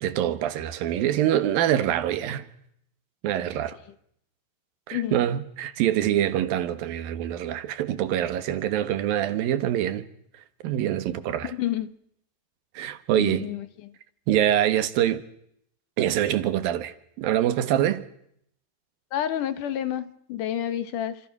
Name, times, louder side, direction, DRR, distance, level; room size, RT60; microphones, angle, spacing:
voice 1, 0.0-2.4 3.2-3.8 4.9-10.1 10.6-11.5 12.7-13.5 14.3-15.2 16.0-18.1, right 11 dB, 85° right, 3.2 m, -25 dB
voice 2, 11.4-11.9 13.2-13.9 19.1-21.2, left 11 dB, 70° left, 2.8 m, -29 dB
29.0 x 26.5 x 6.1 m
omnidirectional pair, 4.0 m